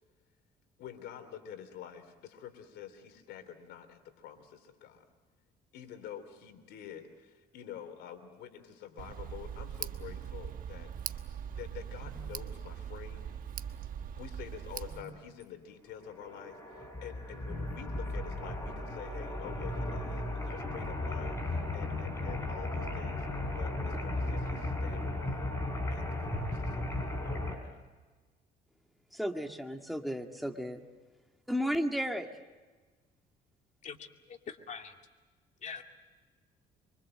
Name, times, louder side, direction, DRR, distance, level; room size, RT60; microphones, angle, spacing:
voice 1, 0.8-5.0 5.7-11.3 11.5-13.4 14.2-23.3 23.5-25.5 25.9-27.8, left 9 dB, 80° left, 9 dB, 3.2 m, -48 dB
Tick, 9.0-15.0, right 9 dB, 55° right, 1.2 m, -41 dB
sound 1, 16.0-27.5, left 1 dB, 15° left, 5.6 m, -35 dB
voice 2, 29.1-30.8 31.5-32.3, equal, ahead, 4 dB, 2.0 m, -34 dB
voice 3, 33.8-34.9 35.6-35.8, left 6 dB, 45° left, 4 dB, 2.4 m, -44 dB
25.0 x 24.0 x 7.7 m, 1.3 s
cardioid pair, 110°, 17 cm